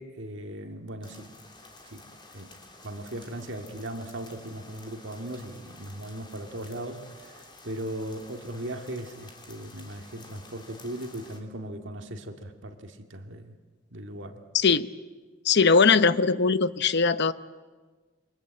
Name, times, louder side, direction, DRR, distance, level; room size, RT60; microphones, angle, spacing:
voice 1, 0.0-1.3 1.8-2.0 2.3-2.6 2.8-13.5 13.9-14.4, right 1 dB, 65° right, 5 dB, 2.1 m, -38 dB
sound 1, 1.0-11.4, left 2 dB, 25° left, 3.4 m, -51 dB
voice 2, 14.5-14.9 15.4-17.3, left 5 dB, 55° left, 13 dB, 0.8 m, -20 dB
28.0 x 24.0 x 8.8 m, 1.4 s
head